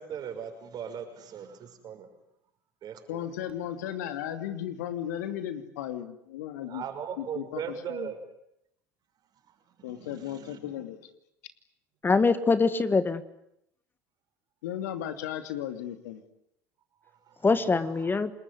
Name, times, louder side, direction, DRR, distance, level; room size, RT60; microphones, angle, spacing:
voice 1, 0.0-2.1 2.8-3.2 6.7-8.2 9.8-10.6 17.3-17.5 17.8-18.1, right 8 dB, 50° right, 6 dB, 6.2 m, -39 dB
voice 2, 3.1-6.8 7.2-8.1 9.8-11.0 14.6-16.2, left 11 dB, 80° left, 9 dB, 2.7 m, -35 dB
voice 3, 12.0-13.2 17.4-18.3, left 4 dB, 25° left, 12 dB, 1.9 m, -23 dB
28.5 x 21.0 x 9.8 m, 0.77 s
hypercardioid pair, 75°, 9 cm